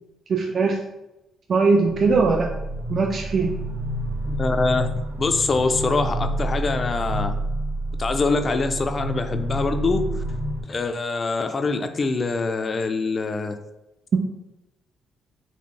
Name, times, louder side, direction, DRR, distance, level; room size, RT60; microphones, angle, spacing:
voice 1, 0.3-0.8 1.5-2.5 2.9-3.6, right 4 dB, 45° right, 2 dB, 0.4 m, -20 dB
sound 1, 1.8-10.6, right 1 dB, 80° right, 0.8 m, -29 dB
voice 2, 4.2-4.9 5.2-7.4 8.0-10.1 10.7-13.6, left 3 dB, 35° left, 8 dB, 0.4 m, -24 dB
4.2 x 3.0 x 3.2 m, 0.96 s
cardioid pair, 115°, 0 cm